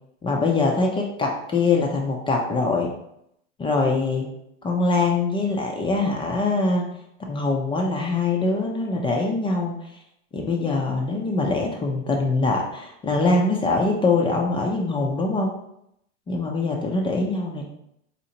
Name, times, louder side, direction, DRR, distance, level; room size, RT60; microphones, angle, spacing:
voice 1, 0.2-2.9 3.6-4.3 4.6-6.9 7.2-9.7 10.3-15.5 16.3-17.7, left 3 dB, 15° left, 1 dB, 0.3 m, -23 dB
4.1 x 2.7 x 2.8 m, 0.77 s
hypercardioid pair, 105°, 37 cm